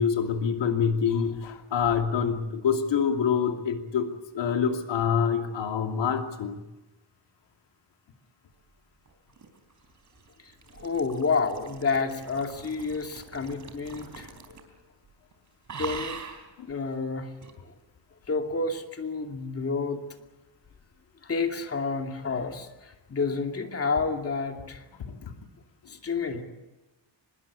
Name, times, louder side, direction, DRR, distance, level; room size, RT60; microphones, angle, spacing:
voice 1, 0.0-4.1 4.3-6.6 16.6-16.7 25.2-25.3, left 7 dB, 90° left, 5 dB, 2.8 m, -26 dB
sound 1, 9.1-14.8 15.1-15.3 15.7-16.5 17.4-17.6, right 5 dB, 40° right, 3.7 m, -43 dB
voice 2, 10.4-14.3 15.8-16.2 16.7-17.3 17.6-17.7 18.3-20.0 21.2-24.8 25.9-26.4, left 4 dB, 35° left, 4 dB, 2.6 m, -30 dB
24.5 x 21.5 x 8.4 m, 1.0 s
wide cardioid pair, 175°, 43 cm